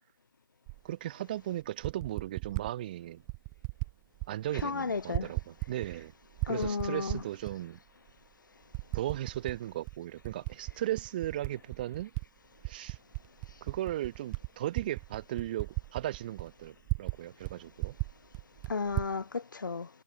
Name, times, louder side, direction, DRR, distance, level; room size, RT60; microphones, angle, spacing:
Typing, 0.7-0.8 1.6-2.7 3.3-3.9 4.2-4.7 5.0-6.0 6.3-7.5 8.1-8.2 8.7-9.6 9.9-12.2 12.6-17.2 17.4-17.5 17.8-19.1, right 37 dB, 10° right, 0.4 m, -36 dB
voice 1, 0.8-3.2 4.3-6.1 6.5-7.8 8.9-12.1 12.7-13.0 13.6-18.0, right 13 dB, 25° right, 1.7 m, -36 dB
voice 2, 4.6-5.3 6.5-7.2 18.7-19.9, left 4 dB, 60° left, 0.5 m, -33 dB
figure-of-eight pair, 145°, 12 cm